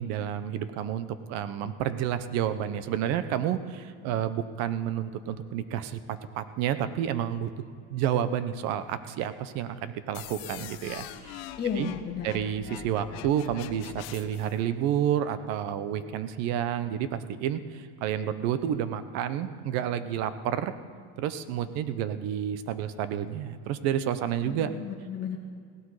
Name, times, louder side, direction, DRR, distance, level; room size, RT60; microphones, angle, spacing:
voice 1, 0.0-7.5 7.9-11.5 11.8-11.9 12.2-20.7 21.2-24.7, right 10 dB, 60° right, 12 dB, 0.9 m, -30 dB
sound 1, 10.1-14.5, left 11 dB, 60° left, 0.9 m, -43 dB
voice 2, 11.6-12.3 24.4-25.4, left 7 dB, 35° left, 1 dB, 1.4 m, -33 dB
17.0 x 12.0 x 4.9 m, 2.1 s
cardioid pair, 140°, 30 cm